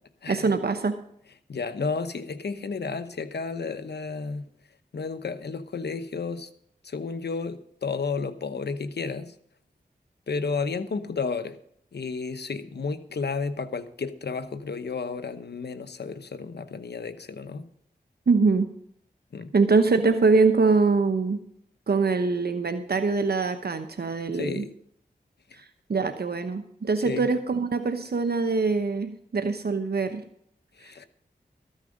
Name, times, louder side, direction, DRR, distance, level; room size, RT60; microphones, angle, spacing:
voice 1, 0.3-1.0 18.3-18.7 19.5-21.4 21.9-24.7 25.6-30.2, right 4 dB, 65° right, 8 dB, 1.0 m, -23 dB
voice 2, 1.5-4.5 4.9-6.5 6.8-9.3 10.3-11.6 11.9-17.7 19.3-19.5 24.3-24.7 25.5-25.6 27.0-27.3 30.8-31.1, left 4 dB, 75° left, 11 dB, 1.0 m, -32 dB
13.5 x 9.1 x 5.2 m, 0.67 s
cardioid pair, 40°, 17 cm